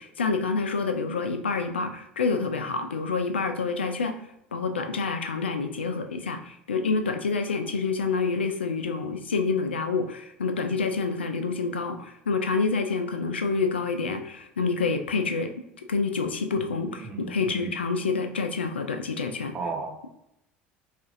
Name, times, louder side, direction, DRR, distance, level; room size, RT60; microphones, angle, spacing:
voice 1, 0.0-4.1 4.5-15.5 15.9-19.6, left 4 dB, 90° left, 7 dB, 0.4 m, -27 dB
voice 2, 16.5-17.7 19.5-19.9, right 4 dB, 30° right, 1 dB, 1.0 m, -35 dB
4.9 x 2.5 x 2.5 m, 0.81 s
hypercardioid pair, 75°, 6 cm